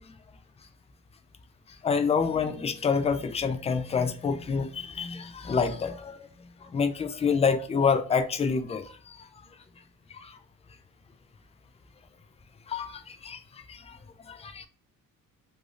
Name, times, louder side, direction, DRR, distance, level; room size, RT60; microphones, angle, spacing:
voice 1, 1.8-6.2 6.6-9.3 10.2-10.4 12.7-14.0 14.3-14.7, left 5 dB, 20° left, 0.3 m, -28 dB
3.3 x 2.6 x 2.4 m
cardioid pair, 120°, 35 cm